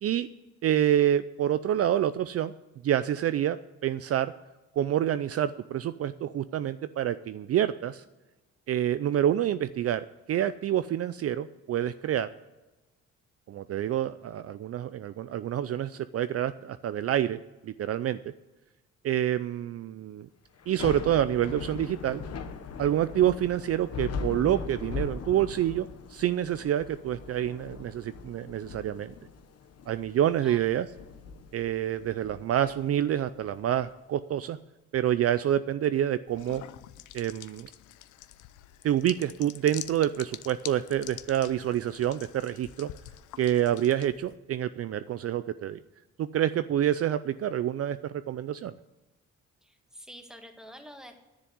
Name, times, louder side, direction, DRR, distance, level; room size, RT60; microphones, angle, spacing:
voice 1, 0.6-2.5 2.8-4.3 4.8-8.0 8.7-12.3 13.5-18.2 19.0-20.3 20.7-22.2 22.8-29.1 29.9-30.9 31.5-34.6 34.9-36.6 37.1-37.7 38.8-42.9 43.4-45.8 46.2-48.7, right 11 dB, 50° right, 13 dB, 0.5 m, -27 dB
Thunder / Rain, 20.6-33.8, left 5 dB, 55° left, 1.3 m, -40 dB
sound 1, 36.3-44.4, left 13 dB, 80° left, 0.6 m, -46 dB
voice 2, 49.6-51.2, equal, ahead, 4 dB, 1.8 m, -47 dB
10.0 x 7.4 x 9.5 m, 1.1 s
cardioid pair, 90°, 30 cm